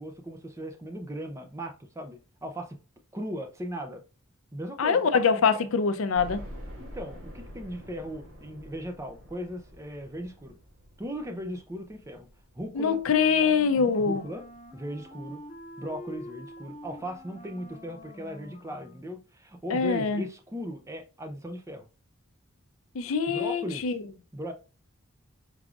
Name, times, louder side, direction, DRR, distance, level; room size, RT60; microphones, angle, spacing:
voice 1, 0.0-2.8 3.1-4.0 4.5-5.1 5.5-5.7 6.8-10.6 11.0-12.3 12.5-13.0 13.8-14.5 14.7-15.4 15.8-21.9 23.3-23.9 24.3-24.5, equal, 15° right, 0.5 m, -38 dB
voice 2, 4.8-6.4 12.8-14.2 19.7-20.2 22.9-24.0, left 5 dB, 70° left, 0.5 m, -24 dB
sound 1, 6.1-15.1 15.5-15.6 16.0-16.1 17.3-17.4 17.7-17.8, equal, 75° right, 2.1 m, -47 dB
Wind instrument woodwind instrument, 13.1-19.2, left 1 dB, 30° left, 1.0 m, -46 dB
4.8 x 3.5 x 2.4 m
head